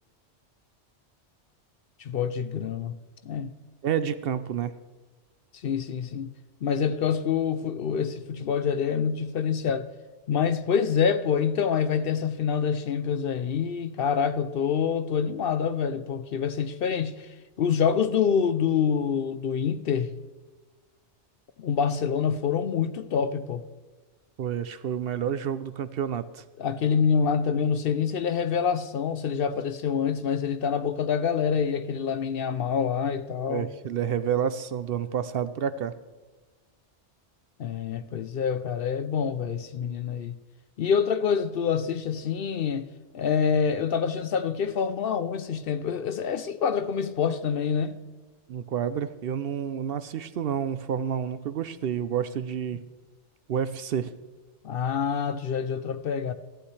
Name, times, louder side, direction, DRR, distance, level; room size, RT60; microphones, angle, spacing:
voice 1, 2.0-3.0 3.2-3.6 5.5-6.3 6.6-9.9 10.3-20.2 21.6-23.6 26.6-33.7 37.6-40.4 40.8-42.9 43.1-48.0 54.6-56.3, left 7 dB, 60° left, 0.7 m, -26 dB
voice 2, 3.8-4.7 24.4-26.4 33.5-35.9 48.5-52.8 53.5-54.1, right 8 dB, 65° right, 0.7 m, -29 dB
14.5 x 11.5 x 3.2 m
omnidirectional pair, 1.2 m